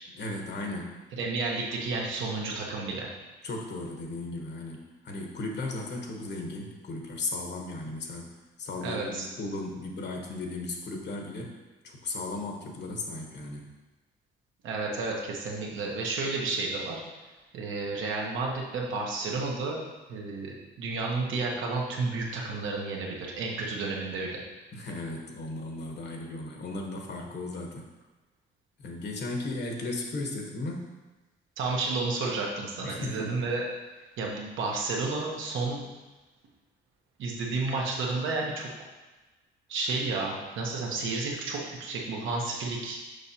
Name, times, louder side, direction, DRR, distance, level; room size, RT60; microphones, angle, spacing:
voice 1, 0.2-1.0 3.4-8.3 8.6-11.6 11.8-13.7 24.7-27.9 28.8-30.9 32.8-33.4, left 2 dB, 60° left, 1 dB, 1.1 m, -36 dB
voice 2, 1.2-3.1 8.8-9.2 14.6-17.0 17.5-19.8 20.1-24.4 31.6-33.6 34.2-35.8 37.2-38.7 39.7-43.0, right 3 dB, 80° right, -1 dB, 1.2 m, -31 dB
6.5 x 5.1 x 2.9 m, 1.2 s
cardioid pair, 90°, 20 cm